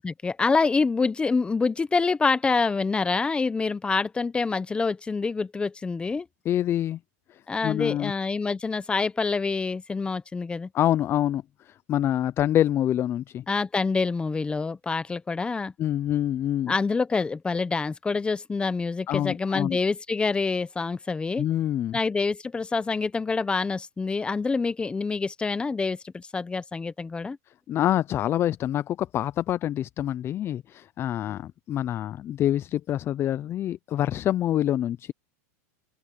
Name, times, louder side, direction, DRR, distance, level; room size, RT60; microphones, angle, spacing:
voice 1, 0.0-6.3 7.5-10.7 13.5-15.7 16.6-21.5 21.9-27.4, left 4 dB, 10° left, 0.9 m, -26 dB
voice 2, 6.5-7.0 7.3-8.1 10.7-13.4 15.8-16.7 19.1-19.8 21.4-22.0 27.7-35.1, left 12 dB, 30° left, 0.4 m, -26 dB
open air
supercardioid pair, 130°, 9 cm